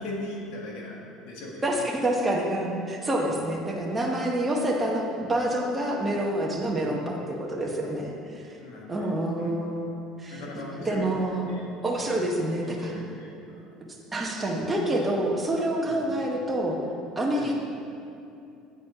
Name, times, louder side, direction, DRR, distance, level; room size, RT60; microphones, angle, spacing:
voice 1, 0.0-1.8 2.2-2.3 3.2-3.5 6.8-7.1 7.8-8.0 8.6-9.1 9.4-9.5 10.3-11.1 11.4-13.6 15.8-16.2 17.3-17.5, left 1 dB, 75° left, -2 dB, 1.5 m, -40 dB
voice 2, 1.6-8.1 8.5-8.6 8.9-10.4 10.9-11.5 11.8-12.9 14.1-16.8 17.2-17.5, right 1 dB, 15° right, -1 dB, 0.9 m, -27 dB
8.0 x 4.2 x 5.3 m, 2.6 s
cardioid pair, 125°, 0 cm